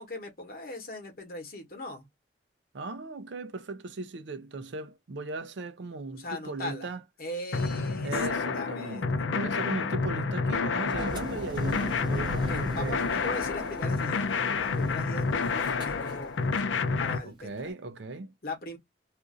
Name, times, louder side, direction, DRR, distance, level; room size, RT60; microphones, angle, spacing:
voice 1, 0.0-2.1 6.1-6.9 7.2-9.1 12.3-14.3 14.6-16.3 17.0-17.7 18.4-18.8, left 2 dB, 50° left, 1.1 m, -39 dB
voice 2, 2.7-7.0 8.0-13.0 17.2-18.3, right 3 dB, 80° right, 0.5 m, -38 dB
sound 1, 7.5-17.2, left 4 dB, 90° left, 0.4 m, -29 dB
Engine, 10.9-16.8, equal, 25° right, 1.1 m, -40 dB
2.5 x 2.5 x 3.7 m
head